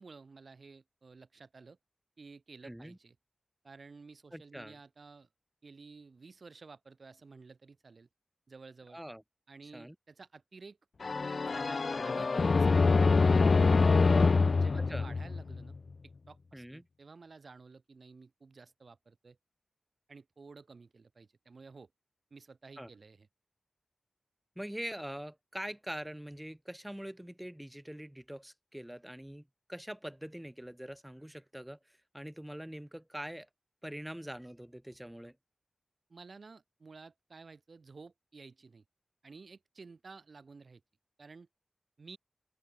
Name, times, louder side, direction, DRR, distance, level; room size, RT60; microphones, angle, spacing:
voice 1, 0.0-1.8 2.2-3.2 3.6-5.3 5.6-8.1 8.5-9.0 9.5-10.8 11.3-13.5 14.2-15.8 16.0-19.4 20.1-21.9 22.3-23.3 36.1-38.8 39.2-40.8 41.2-41.5 42.0-42.2, right 4 dB, 65° right, 3.9 m, -53 dB
voice 2, 2.6-3.0 4.3-4.8 8.9-9.2 9.7-9.9 14.8-15.1 16.5-16.8 22.8-22.9 24.6-29.4 29.7-31.8 32.1-33.5 33.8-35.3, equal, 5° right, 4.2 m, -43 dB
sound 1, 11.0-15.8, left 4 dB, 60° left, 0.4 m, -25 dB
open air
wide cardioid pair, 90°, 0 cm